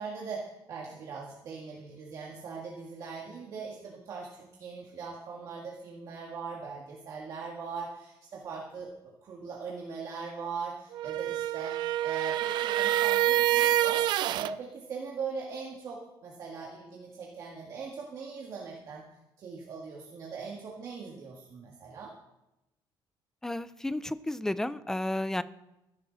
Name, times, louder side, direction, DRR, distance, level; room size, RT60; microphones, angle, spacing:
voice 1, 0.0-8.9 9.2-14.1 14.3-19.0 19.4-22.1, right 5 dB, 40° right, -2 dB, 1.8 m, -40 dB
sound 1, 10.9-14.5, right 13 dB, 60° right, 0.4 m, -27 dB
voice 2, 23.4-25.4, left 1 dB, 5° left, 15 dB, 0.4 m, -32 dB
16.0 x 11.5 x 4.0 m, 0.93 s
cardioid pair, 180°, 9 cm